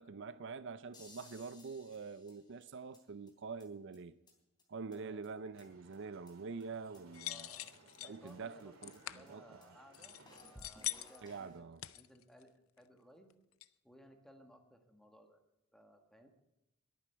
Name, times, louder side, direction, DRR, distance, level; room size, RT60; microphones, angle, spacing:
voice 1, 0.0-4.1 4.7-7.5 8.0-9.6 11.2-11.8, right 4 dB, 60° right, 0.5 m, -46 dB
sound 1, 0.9-3.0 3.3-3.4 3.6-3.7 3.9-4.0 4.3-4.4 4.6-4.7 4.9-5.0 5.2-6.0 6.3-6.4 6.6-6.7 6.9-7.0 7.3-7.4 7.6-7.7 7.9-8.0 8.3-8.4 8.6-8.7 8.9-9.0 9.3-9.4 9.6-9.7 9.9-10.0 10.3-11.6, left 1 dB, 20° left, 3.4 m, -60 dB
voice 2, 4.9-5.4 7.2-10.2 10.5-13.3 13.8-15.4 15.7-16.3, equal, ahead, 1.6 m, -61 dB
sound 2, 5.5-10.6, right 2 dB, 85° right, 2.3 m, -63 dB
sound 3, 7.1-8.2 8.8-9.2 9.9-11.3 11.8-12.4 12.8-12.9 13.3-13.4 13.6-13.7, left 14 dB, 80° left, 0.6 m, -43 dB
21.0 x 9.3 x 4.6 m
head